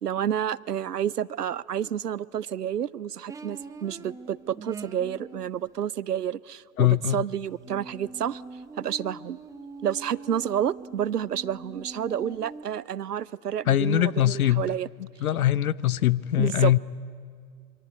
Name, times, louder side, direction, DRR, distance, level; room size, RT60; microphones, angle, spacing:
voice 1, 0.0-8.4 8.8-9.4 9.8-14.9 16.4-16.7, right 9 dB, 90° right, 0.7 m, -30 dB
sound 1, 3.3-5.5 7.6-12.6, right 3 dB, 5° right, 0.7 m, -43 dB
voice 2, 6.8-7.2 13.7-14.7 15.2-16.8, left 13 dB, 70° left, 0.8 m, -22 dB
26.5 x 23.5 x 9.4 m
figure-of-eight pair, 105°, 46 cm